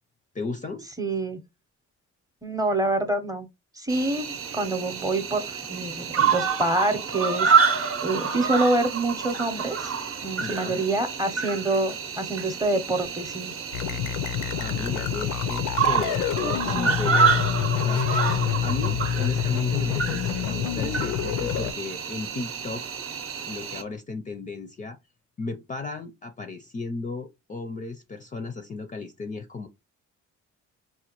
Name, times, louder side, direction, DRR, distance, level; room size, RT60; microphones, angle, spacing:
voice 1, 0.3-0.9 10.4-10.8 14.6-17.4 17.8-18.0 18.6-22.9 23.5-25.0 25.4-29.7, left 3 dB, 25° left, 0.4 m, -35 dB
voice 2, 1.0-1.4 2.4-3.5 3.8-9.9 10.2-13.5, right 2 dB, 10° right, 0.7 m, -27 dB
Cricket, 3.9-23.8, right 6 dB, 45° right, 0.7 m, -28 dB
sound 1, 13.7-21.7, left 9 dB, 85° left, 0.5 m, -27 dB
4.2 x 2.2 x 2.9 m
cardioid pair, 90°, 30 cm